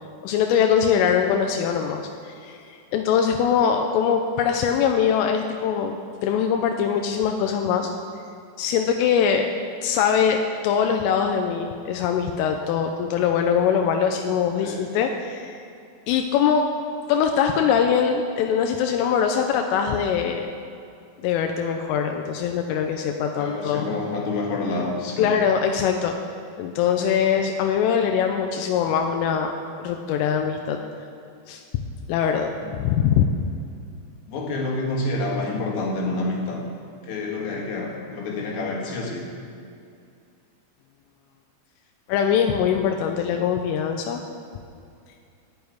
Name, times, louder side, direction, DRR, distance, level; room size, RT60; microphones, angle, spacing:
voice 1, 0.2-2.6 2.9-6.0 6.2-7.9 8.6-9.5 9.8-10.4 10.6-15.6 16.1-16.7 17.1-20.5 21.2-23.8 25.2-26.2 26.6-29.5 29.8-30.8 31.5-31.6 32.1-32.5 32.8-33.3 42.1-44.2, left 7 dB, 90° left, 4 dB, 3.3 m, -22 dB
voice 2, 23.4-25.4 32.5-32.8 34.3-36.6 37.0-39.2, left 2 dB, 65° left, -1 dB, 4.0 m, -28 dB
11.5 x 7.0 x 9.4 m, 2.5 s
omnidirectional pair, 5.8 m